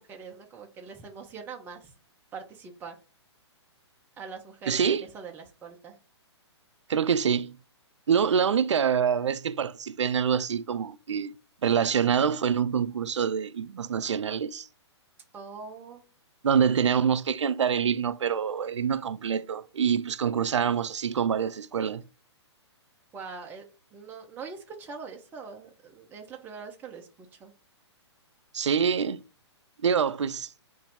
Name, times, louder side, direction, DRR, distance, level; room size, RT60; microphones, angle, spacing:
voice 1, 0.0-1.9 2.3-3.0 4.2-5.9 15.3-16.0 23.1-27.5, right 5 dB, 15° right, 0.6 m, -43 dB
voice 2, 4.7-5.0 6.9-7.5 8.1-11.3 11.6-14.7 16.4-22.0 28.5-29.2 29.8-30.5, right 7 dB, 85° right, 0.4 m, -26 dB
4.1 x 2.6 x 4.0 m
hypercardioid pair, 135°, 15 cm